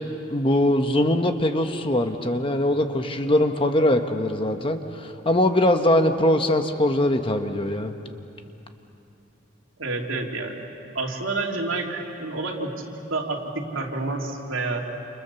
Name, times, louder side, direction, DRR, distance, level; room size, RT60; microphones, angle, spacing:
voice 1, 0.3-7.9, left 1 dB, 25° left, 6 dB, 1.2 m, -22 dB
voice 2, 9.8-10.6 10.9-14.8, right 3 dB, 75° right, 0 dB, 3.0 m, -29 dB
29.0 x 28.5 x 7.0 m, 2.7 s
head